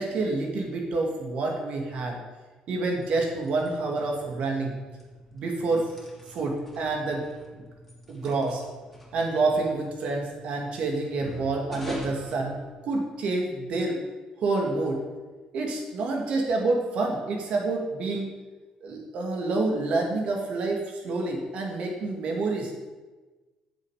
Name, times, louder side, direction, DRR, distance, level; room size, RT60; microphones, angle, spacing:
voice 1, 0.0-2.2 2.7-4.7 5.3-5.9 6.3-7.3 7.5-7.6 8.1-8.6 9.1-14.0 14.4-15.0 15.5-18.3 18.8-22.7, right 3 dB, 65° right, 1 dB, 2.2 m, -28 dB
sound 1, 2.8-13.3, left 1 dB, 5° left, 2.7 m, -45 dB
14.5 x 7.0 x 5.0 m, 1.2 s
cardioid pair, 125°, 2 cm